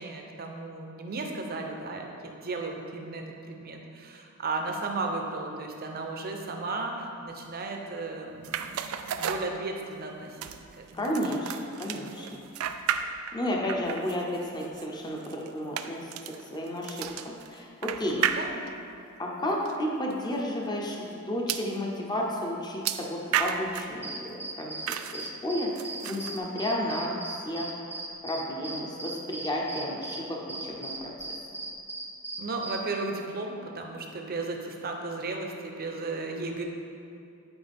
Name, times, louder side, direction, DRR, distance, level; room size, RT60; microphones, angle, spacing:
voice 1, 0.0-10.4 10.8-11.1 13.5-13.8 18.0-18.6 32.4-36.6, right 3 dB, 45° right, 2 dB, 0.8 m, -35 dB
sound 1, 8.4-10.0 10.4-13.4 13.7-18.9 19.6-19.8 20.1-20.2 21.5-21.7 22.8-24.0 24.9-25.3 25.8-26.4, right 8 dB, 85° right, 0.4 m, -33 dB
voice 2, 10.9-12.5 13.3-16.1 16.5-18.2 19.2-24.7 25.1-27.7 28.2-31.1, equal, 20° left, -2 dB, 0.8 m, -32 dB
sound 2, 24.0-32.8, right 2 dB, 10° right, 0.5 m, -38 dB
9.9 x 4.9 x 3.5 m, 2.5 s
head